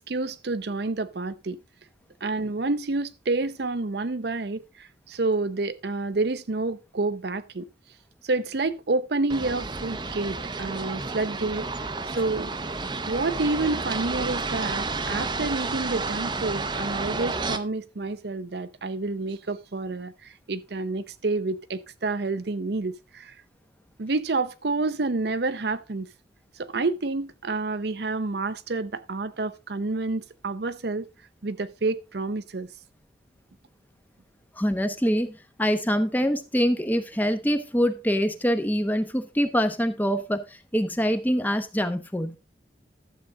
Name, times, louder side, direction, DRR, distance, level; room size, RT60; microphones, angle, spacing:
voice 1, 0.0-1.6 2.2-7.7 8.2-11.7 12.1-12.5 13.1-23.3 24.0-26.1 26.6-31.1 31.4-32.7, right 3 dB, 65° right, 0.7 m, -29 dB
sound 1, 9.3-17.6, right 3 dB, 25° right, 0.7 m, -31 dB
voice 2, 34.6-42.4, equal, 10° left, 0.8 m, -25 dB
12.5 x 7.6 x 3.7 m
head